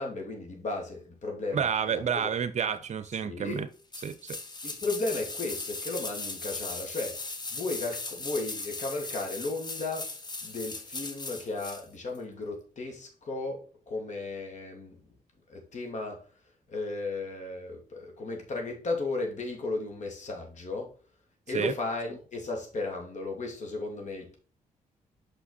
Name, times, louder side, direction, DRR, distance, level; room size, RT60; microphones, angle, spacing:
voice 1, 0.0-2.3 3.2-3.7 4.6-7.2 7.5-10.1 10.4-15.0 15.5-16.2 16.7-20.9 21.5-24.4, left 3 dB, 55° left, 2.8 m, -35 dB
voice 2, 1.5-3.7 4.0-4.4 21.5-21.7, right 7 dB, 50° right, 0.7 m, -30 dB
sound 1, 3.9-11.8 12.1-12.2, left 3 dB, 30° left, 1.2 m, -38 dB
5.9 x 5.7 x 4.1 m
cardioid pair, 80°, 15 cm